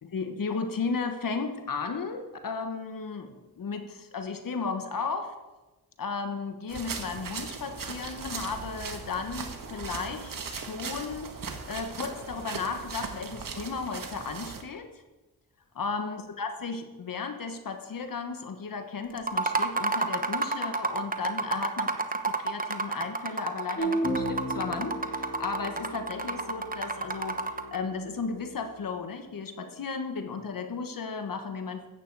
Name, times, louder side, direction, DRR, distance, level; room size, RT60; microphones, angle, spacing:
voice 1, 0.0-5.3 6.0-11.3 11.6-14.9 15.7-21.9 22.4-27.4 27.7-31.9, left 4 dB, 60° left, 7 dB, 1.2 m, -34 dB
sound 1, 6.7-14.6, right 5 dB, 60° right, 1.5 m, -38 dB
sound 2, 19.2-27.8, right 3 dB, 20° right, 1.0 m, -30 dB
sound 3, 23.8-29.1, right 1 dB, 35° left, 4.7 m, -35 dB
13.5 x 9.0 x 4.7 m, 1.1 s
cardioid pair, 70°, 38 cm